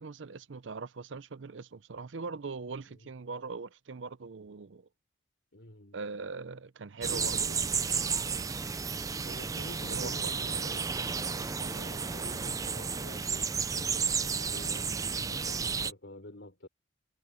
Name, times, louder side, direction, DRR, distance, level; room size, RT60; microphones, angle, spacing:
voice 1, 0.0-4.9 5.9-7.7 9.9-10.3, right 4 dB, 70° right, 0.6 m, -41 dB
voice 2, 5.5-6.0 9.2-16.7, left 1 dB, 65° left, 4.2 m, -49 dB
sound 1, 7.0-15.9, right 5 dB, 15° right, 0.4 m, -32 dB
head